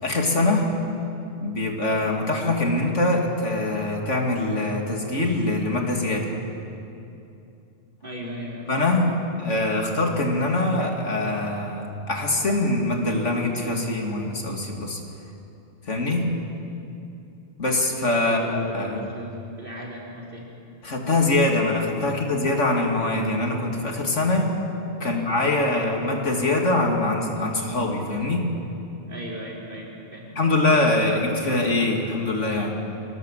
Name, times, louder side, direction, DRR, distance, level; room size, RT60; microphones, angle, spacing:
voice 1, 0.0-0.7 1.4-6.3 8.7-15.0 15.9-16.3 17.6-18.4 18.7-19.0 20.8-24.5 25.0-28.5 30.4-32.8, left 2 dB, 75° left, 1 dB, 3.1 m, -23 dB
voice 2, 8.0-9.1 18.2-20.5 22.0-22.2 25.0-25.9 29.1-30.5, equal, 45° right, -4 dB, 4.9 m, -37 dB
26.0 x 18.5 x 7.6 m, 2.7 s
omnidirectional pair, 1.2 m